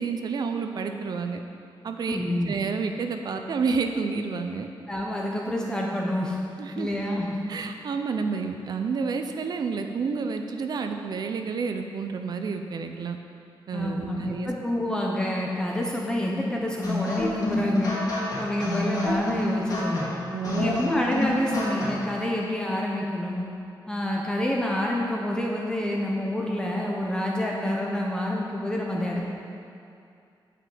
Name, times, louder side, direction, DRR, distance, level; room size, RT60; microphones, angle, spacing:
voice 1, 0.0-1.4 1.8-4.7 6.6-6.9 7.5-13.2 13.7-14.5 20.3-20.9, right 5 dB, 55° right, 6 dB, 0.5 m, -30 dB
voice 2, 2.1-2.5 4.9-6.4 6.7-7.4 13.7-18.0 18.4-20.2 20.6-23.5 23.9-29.2, left 1 dB, 10° left, -2 dB, 0.8 m, -28 dB
sound 1, 16.8-22.1, left 2 dB, 50° left, 2.6 m, -29 dB
9.2 x 5.8 x 7.6 m, 2.5 s
wide cardioid pair, 180°, 8 cm